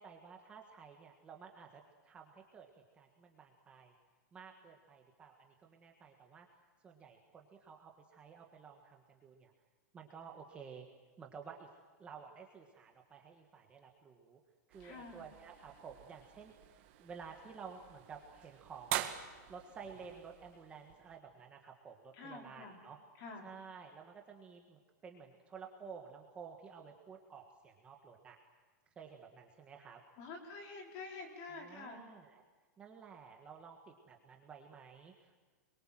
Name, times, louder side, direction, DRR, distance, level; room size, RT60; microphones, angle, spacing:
voice 1, 0.0-3.9 4.3-6.5 6.8-9.5 9.9-10.9 11.2-11.7 12.0-14.4 14.7-19.1 19.5-23.0 23.4-28.4 28.9-30.0 31.5-32.4 32.8-35.4, right 6 dB, 10° right, 2 dB, 1.6 m, -53 dB
sound 1, 14.7-21.2, right 13 dB, 40° right, 1.8 m, -45 dB
voice 2, 14.8-15.3 22.1-22.8 23.2-23.5 30.2-32.0, left 3 dB, 30° left, 2 dB, 4.8 m, -48 dB
26.5 x 23.0 x 7.7 m, 1.4 s
supercardioid pair, 175°, 9 cm